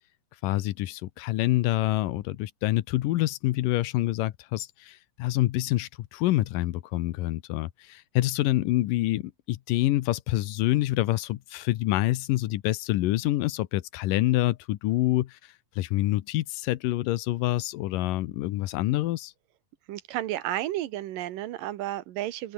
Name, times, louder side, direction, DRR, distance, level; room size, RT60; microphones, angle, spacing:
voice 1, 0.4-19.3, left 16 dB, 85° left, 2.5 m, -27 dB
voice 2, 19.9-22.5, right 14 dB, 90° right, 2.8 m, -32 dB
open air
omnidirectional pair, 3.8 m